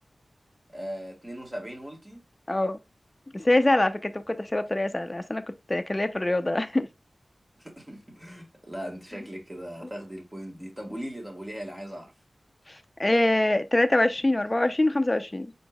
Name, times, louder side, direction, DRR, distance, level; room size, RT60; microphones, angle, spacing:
voice 1, 0.7-2.2 7.6-12.1, equal, 20° right, 1.7 m, -39 dB
voice 2, 2.5-2.8 3.3-5.4 5.7-6.9 13.0-15.5, left 1 dB, 25° left, 0.6 m, -24 dB
4.6 x 4.4 x 2.3 m
wide cardioid pair, 75°, 0 cm